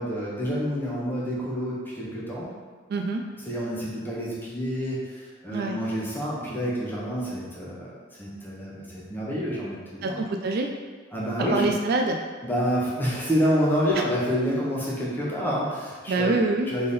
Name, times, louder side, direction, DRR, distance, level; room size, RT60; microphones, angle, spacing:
voice 1, 0.0-2.5 3.5-10.2 11.1-11.7 12.4-16.9, equal, 10° left, -6 dB, 1.0 m, -28 dB
voice 2, 2.9-3.2 5.5-5.7 10.0-10.7 11.5-12.2 16.1-16.7, right 2 dB, 50° right, 3 dB, 0.3 m, -25 dB
3.6 x 3.5 x 4.1 m, 1.5 s
head